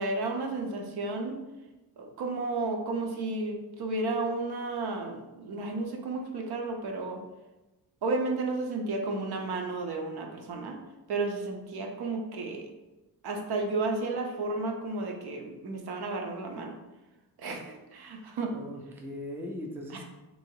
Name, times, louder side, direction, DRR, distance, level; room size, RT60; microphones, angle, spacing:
voice 1, 0.0-1.4 2.0-7.2 8.0-10.8 11.1-12.7 13.2-16.8 17.4-18.5, right 3 dB, 75° right, 3 dB, 0.8 m, -32 dB
voice 2, 18.4-20.0, left 1 dB, 5° right, 1 dB, 0.4 m, -39 dB
3.5 x 2.9 x 4.6 m, 1.1 s
wide cardioid pair, 160°, 39 cm